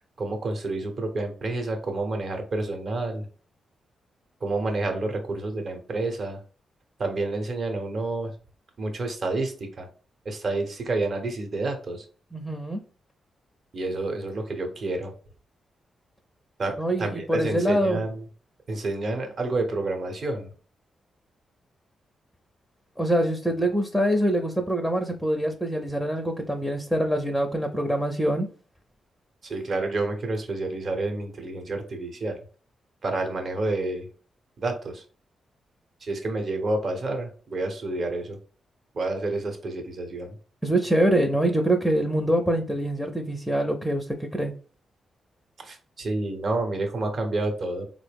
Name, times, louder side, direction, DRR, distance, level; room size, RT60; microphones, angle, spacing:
voice 1, 0.2-3.2 4.4-6.4 7.0-8.3 8.8-9.9 10.2-12.0 13.7-15.1 16.6-18.2 18.7-20.5 29.4-32.4 33.0-34.1 34.6-35.0 36.0-38.4 38.9-40.3 45.6-47.8, right 2 dB, 50° right, 4 dB, 0.9 m, -29 dB
voice 2, 12.3-12.8 16.8-18.0 23.0-28.5 40.6-44.5, right 1 dB, ahead, 4 dB, 0.5 m, -24 dB
4.1 x 2.0 x 3.4 m, 0.40 s
cardioid pair, 80°, 0 cm